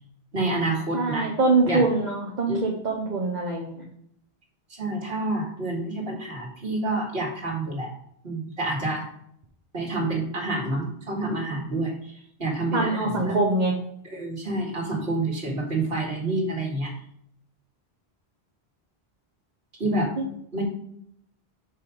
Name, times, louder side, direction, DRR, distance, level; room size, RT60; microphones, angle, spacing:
voice 1, 0.3-1.3 1.6-1.8 2.5-2.6 4.8-7.9 8.2-9.1 9.7-12.1 12.4-13.4 14.0-16.9 19.8-20.1 20.5-20.6, right 2 dB, 65° right, -1 dB, 2.3 m, -28 dB
voice 2, 0.9-3.8 12.7-13.7, right 3 dB, 45° right, -2 dB, 1.2 m, -24 dB
6.1 x 5.6 x 5.0 m, 0.70 s
omnidirectional pair, 1.1 m